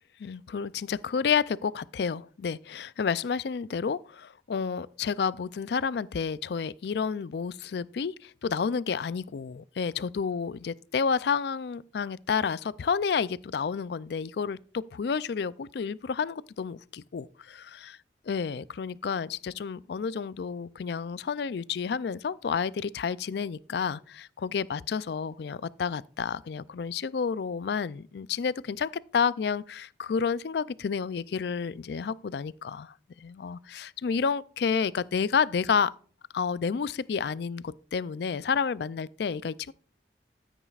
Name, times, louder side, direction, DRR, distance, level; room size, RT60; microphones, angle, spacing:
voice 1, 0.2-18.0 18.3-35.9 36.3-39.7, left 6 dB, 60° left, 0.4 m, -30 dB
13.5 x 9.0 x 2.4 m
head